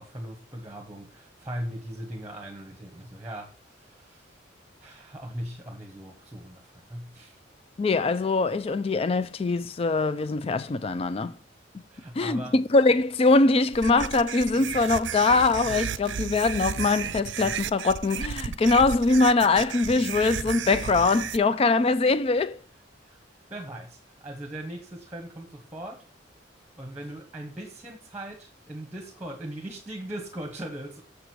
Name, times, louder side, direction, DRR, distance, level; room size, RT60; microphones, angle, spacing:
voice 1, 0.0-4.4 4.8-7.4 11.9-12.5 23.0-23.2 23.5-26.0 26.8-31.0, right 1 dB, 10° right, 1.3 m, -39 dB
voice 2, 7.8-11.3 12.2-22.6, left 3 dB, 30° left, 0.3 m, -22 dB
sound 1, 13.7-21.4, right 8 dB, 75° right, 0.5 m, -33 dB
6.9 x 6.5 x 4.5 m
head